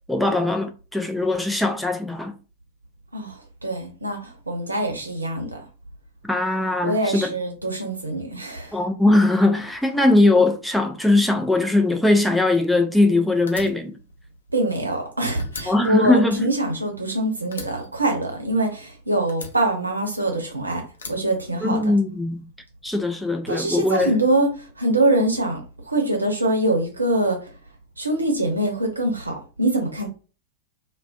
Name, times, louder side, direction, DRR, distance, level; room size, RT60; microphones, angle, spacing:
voice 1, 0.1-2.3 6.2-7.3 8.7-13.9 15.7-16.5 21.6-22.4 22.8-24.1, left 2 dB, ahead, 0.4 m, -20 dB
voice 2, 3.1-5.6 6.8-8.8 14.5-20.8 21.1-21.9 23.5-27.5 28.0-30.1, right 1 dB, 80° right, 0.7 m, -24 dB
Fire, 13.5-15.1 15.4-17.1 17.5-18.8 19.3-20.4 20.9-22.1, left 4 dB, 70° left, 0.5 m, -40 dB
2.4 x 2.1 x 2.4 m
figure-of-eight pair, 90°, 0 cm